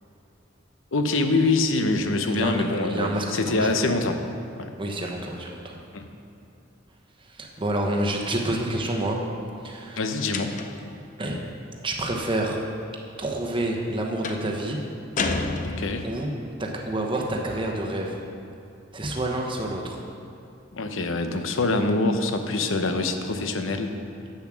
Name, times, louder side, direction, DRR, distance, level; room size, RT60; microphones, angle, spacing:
voice 1, 0.9-4.2 4.6-4.7 5.9-6.1 10.0-10.5 15.6-16.1 20.7-23.9, left 2 dB, 75° left, 6 dB, 0.8 m, -25 dB
voice 2, 2.2-2.5 2.9-3.9 4.8-5.8 7.3-9.2 9.6-10.0 11.2-11.4 11.8-12.6 13.2-14.8 16.0-16.3 16.6-18.2 18.9-20.0, right 1 dB, 25° right, 0 dB, 1.0 m, -28 dB
sound 1, 10.3-10.9 14.2-14.5 15.2-16.2, left 3 dB, 40° left, 0.5 m, -29 dB
8.1 x 7.0 x 6.2 m, 2.8 s
head